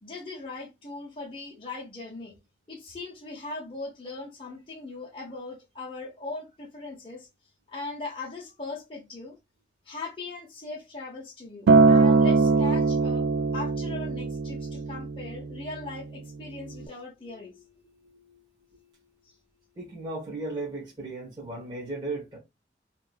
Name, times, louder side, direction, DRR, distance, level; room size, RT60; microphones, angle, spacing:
voice 1, 0.0-2.4 2.7-7.3 7.7-9.4 9.9-17.8 19.2-19.3, left 3 dB, 30° left, 0.7 m, -39 dB
Acoustic guitar, 11.7-16.0 16.8-16.9, right 4 dB, 85° right, 0.3 m, -22 dB
voice 2, 16.4-16.8 17.8-19.1 19.7-22.4, right 2 dB, 25° right, 1.1 m, -37 dB
2.9 x 2.4 x 2.3 m
head